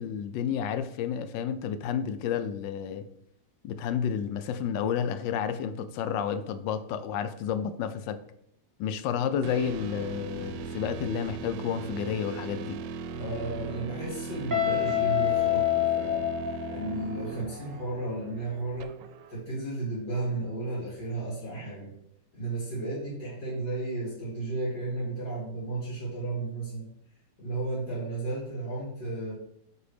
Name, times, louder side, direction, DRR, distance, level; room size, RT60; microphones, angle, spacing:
voice 1, 0.0-3.1 3.6-8.2 8.8-12.8, left 8 dB, 85° left, 10 dB, 1.3 m, -31 dB
sound 1, 9.4-19.4, right 4 dB, 90° right, 1.3 m, -38 dB
voice 2, 13.1-16.2 16.7-18.9 19.3-21.9 22.3-26.9 27.4-29.3, right 2 dB, 65° left, -7 dB, 3.4 m, -33 dB
Guitar, 14.5-17.3, left 13 dB, 10° right, 1.3 m, -27 dB
8.8 x 4.8 x 3.4 m, 0.73 s
omnidirectional pair, 1.9 m